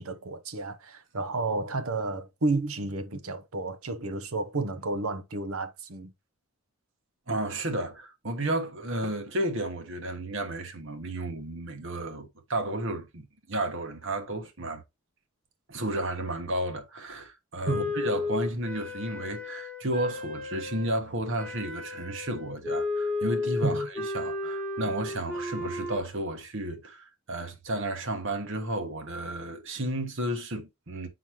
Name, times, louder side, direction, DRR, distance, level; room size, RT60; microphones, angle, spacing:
voice 1, 0.0-6.1 17.7-17.9 23.6-23.9, right 3 dB, 75° right, 0.9 m, -31 dB
voice 2, 7.3-14.8 15.7-31.1, right 1 dB, 55° right, 1.3 m, -32 dB
Wind instrument woodwind instrument, 17.7-21.0 21.4-26.0, left 3 dB, 10° left, 1.3 m, -33 dB
8.9 x 4.1 x 3.1 m
head